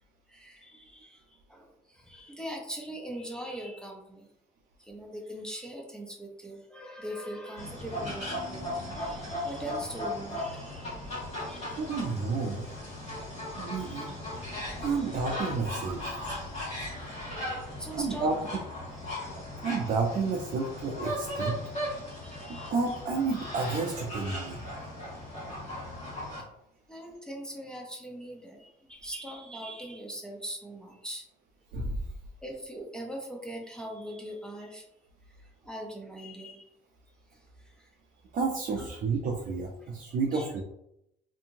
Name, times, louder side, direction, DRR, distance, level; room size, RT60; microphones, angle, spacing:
voice 1, 0.3-1.2 1.5-4.3 4.8-11.8 13.8-14.1 14.7-15.1 17.2-17.5 17.8-18.3 22.1-22.7 26.9-31.2 32.4-34.8 35.6-36.7 37.8-37.9 38.8-38.9 39.8-39.9 40.3-40.5, right 1 dB, 5° left, 0 dB, 0.5 m, -41 dB
sound 1, 7.6-26.4, left 1 dB, 40° left, 1.5 m, -37 dB
voice 2, 11.7-12.7 13.6-14.2 14.8-16.0 17.4-17.5 17.9-18.4 19.6-21.6 22.5-24.6 31.7-32.0 38.3-40.6, right 4 dB, 55° right, 0 dB, 0.5 m, -30 dB
2.7 x 2.6 x 2.6 m, 0.79 s
cardioid pair, 110°, 17 cm